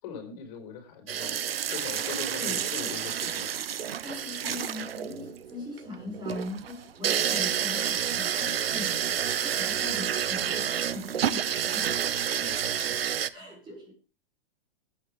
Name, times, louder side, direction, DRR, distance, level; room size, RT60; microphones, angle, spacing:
voice 1, 0.0-3.5 12.3-13.0 13.3-13.4, left 7 dB, 45° left, 4 dB, 4.7 m, -42 dB
sound 1, 1.1-13.3, right 9 dB, 85° right, 1.0 m, -29 dB
voice 2, 2.4-2.7 4.0-11.9 13.3-13.9, left 2 dB, 15° right, 1 dB, 6.3 m, -41 dB
21.0 x 8.9 x 3.4 m, 0.31 s
hypercardioid pair, 135°, 29 cm